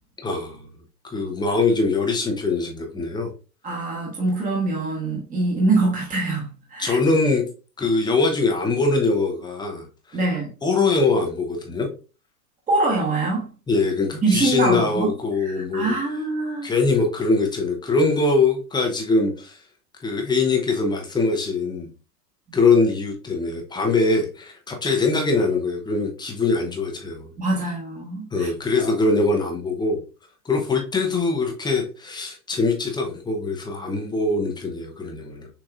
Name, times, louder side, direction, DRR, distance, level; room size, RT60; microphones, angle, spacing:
voice 1, 0.2-0.7 1.0-3.3 6.8-7.4 7.8-9.9 10.6-11.9 13.7-16.0 16.6-19.6 20.0-21.9 22.5-27.3 28.3-30.0 30.4-35.5, left 3 dB, 10° left, 0.7 m, -22 dB
voice 2, 3.6-7.0 10.1-10.5 12.7-13.5 14.2-15.1 15.4-16.7 27.4-28.5 28.8-28.9, right 3 dB, 15° right, 1.3 m, -24 dB
6.5 x 2.9 x 2.4 m
hypercardioid pair, 105°, 50 cm